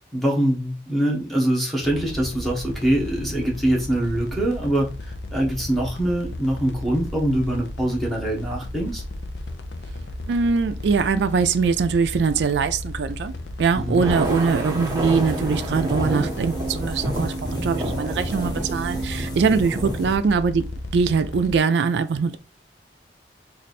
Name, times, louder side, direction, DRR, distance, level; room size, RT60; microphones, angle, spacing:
voice 1, 0.1-4.9 5.3-9.0 13.7-14.0, right 1 dB, ahead, 1.0 m, -23 dB
sound 1, 1.8-21.6, left 1 dB, 70° left, 0.5 m, -34 dB
voice 2, 10.3-13.3 13.6-22.4, right 5 dB, 75° right, 0.4 m, -22 dB
Thunder, 13.9-20.1, right 1 dB, 20° right, 0.7 m, -29 dB
Bee Wasp, 14.2-20.1, right 2 dB, 25° left, 1.0 m, -36 dB
3.2 x 2.5 x 4.1 m
head